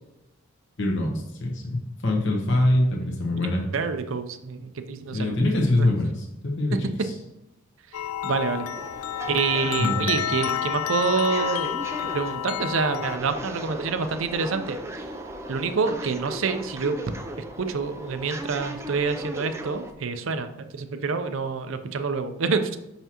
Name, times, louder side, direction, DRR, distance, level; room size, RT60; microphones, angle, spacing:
voice 1, 0.8-3.6 5.1-7.1 9.8-10.1, left 1 dB, 55° left, -1 dB, 1.0 m, -24 dB
voice 2, 3.4-5.5 5.8-5.9 6.7-6.8 8.2-8.7 9.3-11.7 12.1-14.8 15.5-17.0 17.6-22.8, right 5 dB, 65° right, 9 dB, 0.5 m, -27 dB
sound 1, 7.9-13.2, left 10 dB, 80° left, 0.3 m, -29 dB
sound 2, 8.7-19.9, right 1 dB, 15° right, 0.4 m, -38 dB
6.0 x 5.6 x 2.9 m, 0.92 s
head